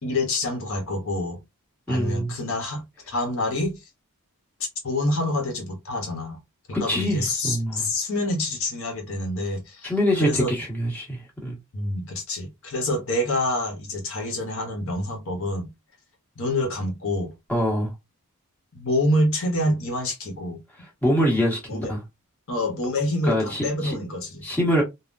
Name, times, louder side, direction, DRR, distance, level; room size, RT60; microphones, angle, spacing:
voice 1, 0.0-1.4 1.9-3.8 4.8-6.4 6.7-9.9 10.2-10.5 11.7-15.7 16.4-17.3 18.7-20.6 21.7-21.9 22.5-24.4, left 1 dB, 60° left, 0.9 m, -27 dB
voice 2, 1.9-2.3 6.7-7.9 9.8-11.6 17.5-17.9 20.8-22.0 23.2-23.9 24.4-24.8, equal, 5° left, 1.3 m, -24 dB
3.6 x 2.1 x 2.5 m
head